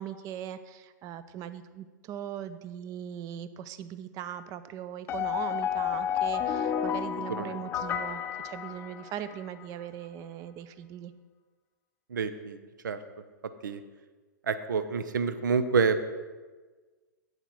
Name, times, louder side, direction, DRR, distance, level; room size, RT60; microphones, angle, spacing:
voice 1, 0.0-11.1, right 10 dB, 35° right, 13 dB, 0.6 m, -40 dB
sound 1, 5.1-9.4, left 9 dB, 25° left, 0.5 m, -31 dB
voice 2, 7.3-7.6 12.1-13.0 13.6-13.8 14.4-16.0, right 5 dB, 70° right, 11 dB, 0.8 m, -28 dB
8.3 x 8.0 x 4.6 m, 1.3 s
hypercardioid pair, 110°, 10 cm